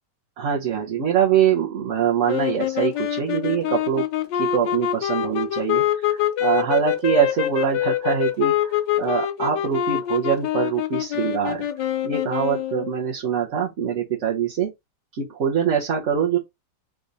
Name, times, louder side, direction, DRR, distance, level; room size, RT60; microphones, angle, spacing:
voice 1, 0.4-4.0 4.3-11.7 12.0-14.7 15.1-16.4, right 8 dB, 50° right, 1.1 m, -23 dB
sound 1, 2.3-13.0, left 11 dB, 75° left, 1.3 m, -25 dB
3.7 x 3.4 x 4.0 m
omnidirectional pair, 2.0 m